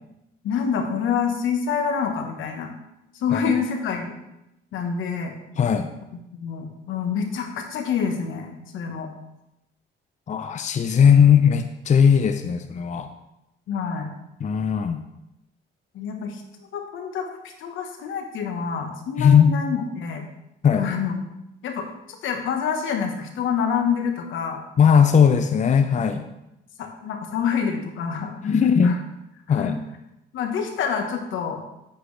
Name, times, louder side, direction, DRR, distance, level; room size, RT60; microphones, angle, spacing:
voice 1, 0.4-2.7 3.1-4.1 4.7-5.3 6.3-9.1 13.7-14.1 15.9-16.4 16.7-20.2 20.8-21.1 21.6-24.6 26.8-28.5 28.8-29.0 29.5-29.7 30.3-31.6, left 6 dB, 80° left, 4 dB, 1.3 m, -27 dB
voice 2, 5.6-5.9 10.3-13.1 14.4-15.0 19.2-19.6 20.6-20.9 24.8-26.2 28.4-29.0 29.5-29.8, left 7 dB, 35° left, 8 dB, 0.5 m, -18 dB
8.2 x 7.9 x 3.3 m, 0.89 s
cardioid pair, 90°, 20 cm